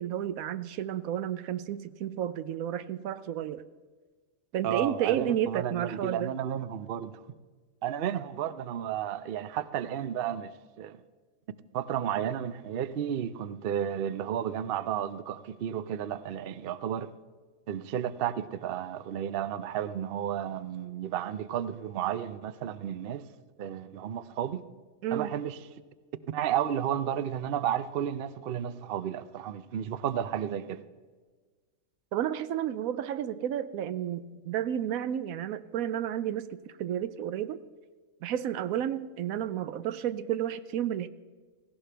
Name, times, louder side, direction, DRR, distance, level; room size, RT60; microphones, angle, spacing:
voice 1, 0.0-3.6 4.5-6.3 25.0-25.3 32.1-37.6 38.2-41.1, right 10 dB, 80° right, 1.0 m, -31 dB
voice 2, 4.6-7.2 7.8-10.5 10.8-11.0 11.7-17.1 17.7-23.3 23.6-24.6 25.1-25.6 26.3-30.8, right 9 dB, 55° right, 0.6 m, -32 dB
17.0 x 16.5 x 3.4 m
omnidirectional pair, 1.5 m